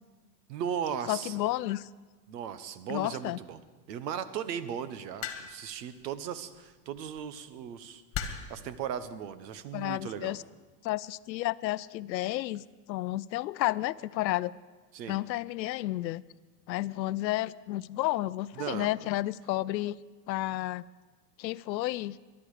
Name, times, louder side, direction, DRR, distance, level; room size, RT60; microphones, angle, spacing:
voice 1, 0.5-1.4 2.3-3.6 3.9-10.4 14.9-15.2 18.6-18.9, right 8 dB, 75° right, 13 dB, 1.2 m, -37 dB
voice 2, 1.1-1.9 2.9-3.4 9.7-10.4 10.8-12.6 12.9-14.5 15.1-16.2 16.7-20.0 20.3-20.8 21.4-22.2, left 16 dB, 85° left, 19 dB, 0.6 m, -31 dB
sound 1, 5.2-5.7 7.0-7.2 8.1-8.6 9.6-9.9, left 8 dB, 30° left, 1.7 m, -36 dB
22.0 x 11.0 x 4.9 m, 1.3 s
hypercardioid pair, 115°, 50 cm